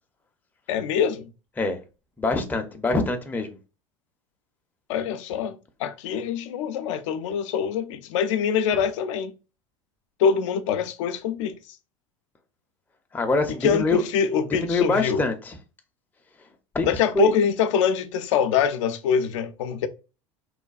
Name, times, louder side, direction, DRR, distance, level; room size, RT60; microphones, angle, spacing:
voice 1, 0.7-1.3 4.9-9.3 10.2-11.8 13.6-15.2 16.8-19.9, left 7 dB, 65° left, 0.4 m, -24 dB
voice 2, 2.2-3.5 13.1-14.0 14.5-15.6 16.7-16.9 17.1-17.3, left 3 dB, 10° left, 0.5 m, -24 dB
3.1 x 2.2 x 2.3 m
hypercardioid pair, 75°, 17 cm